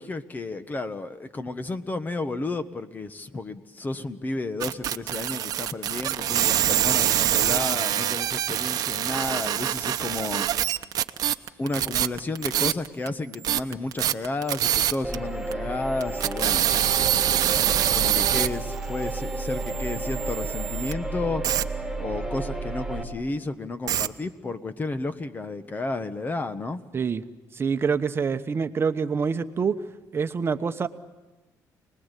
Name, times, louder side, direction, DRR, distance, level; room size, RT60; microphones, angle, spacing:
voice 1, 0.0-10.5 11.6-16.7 17.6-21.4 22.0-26.8, left 2 dB, 25° left, 11 dB, 1.4 m, -32 dB
sound 1, 4.6-13.1 13.3-15.2 15.5-15.6 16.0-20.9 21.4-21.6 23.9-24.1, right 11 dB, 65° right, 1.0 m, -25 dB
sound 2, 15.0-23.0, right 2 dB, 5° left, 5.3 m, -32 dB
voice 2, 27.5-29.8 30.1-30.9, right 5 dB, 35° right, 9 dB, 1.1 m, -26 dB
29.5 x 20.5 x 8.3 m, 1.1 s
cardioid pair, 105°, 7 cm